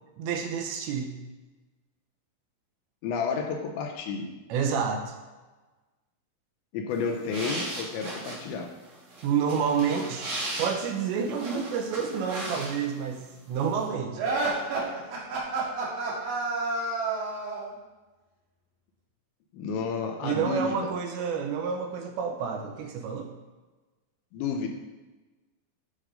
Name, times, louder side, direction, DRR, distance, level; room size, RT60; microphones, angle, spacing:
voice 1, 0.2-1.1 4.5-5.1 9.2-10.3 10.6-13.2 13.5-14.2 20.2-23.3, right 6 dB, 80° right, 4 dB, 3.0 m, -29 dB
voice 2, 3.0-4.3 6.7-8.7 19.5-20.9 24.3-24.7, left 5 dB, 80° left, 3 dB, 3.1 m, -31 dB
sound 1, 6.9-13.1 13.4-13.9, right 1 dB, 45° right, 3.2 m, -37 dB
sound 2, 14.2-17.7, right 3 dB, 60° right, 2.9 m, -29 dB
11.0 x 5.2 x 5.1 m, 1.2 s
omnidirectional pair, 5.4 m